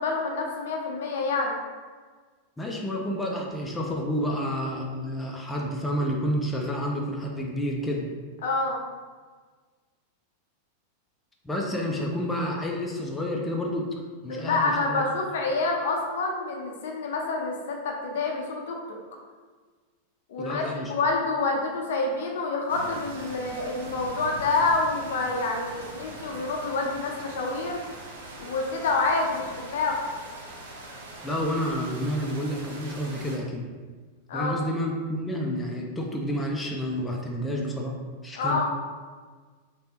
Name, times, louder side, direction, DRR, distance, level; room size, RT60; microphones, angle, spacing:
voice 1, 0.0-1.5 8.4-8.8 14.3-19.0 20.3-27.8 28.4-30.1 34.3-34.6 38.4-38.6, left 3 dB, 60° left, 1 dB, 0.5 m, -27 dB
voice 2, 2.6-8.1 11.4-13.9 14.2-15.0 20.4-20.9 31.2-33.6 34.3-37.9 38.2-38.6, equal, 10° left, -1 dB, 0.5 m, -29 dB
sound 1, 22.7-33.4, right 2 dB, 65° right, 0.6 m, -42 dB
3.2 x 2.9 x 2.9 m, 1.5 s
figure-of-eight pair, 90°, 0 cm